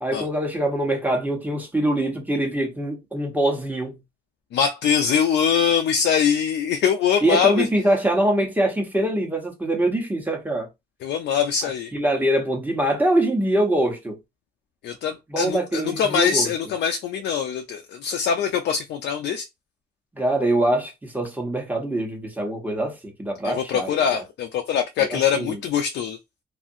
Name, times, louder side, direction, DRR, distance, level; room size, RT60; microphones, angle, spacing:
voice 1, 0.0-4.0 7.2-10.7 11.9-14.2 15.3-16.5 20.1-24.2 25.0-25.6, right 1 dB, 10° right, 1.0 m, -24 dB
voice 2, 4.5-7.7 11.0-11.9 14.8-19.4 23.4-26.2, left 7 dB, 70° left, 0.5 m, -23 dB
2.7 x 2.5 x 2.6 m
cardioid pair, 100°, 18 cm